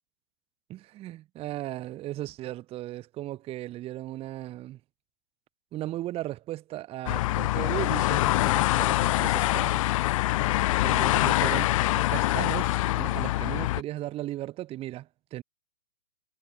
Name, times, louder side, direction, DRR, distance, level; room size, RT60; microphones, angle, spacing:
voice 1, 0.7-4.8 5.7-9.8 10.8-15.4, right 15 dB, 15° right, 1.2 m, -36 dB
sound 1, 7.1-13.8, left 17 dB, 30° left, 0.7 m, -24 dB
hypercardioid pair, 145°, 36 cm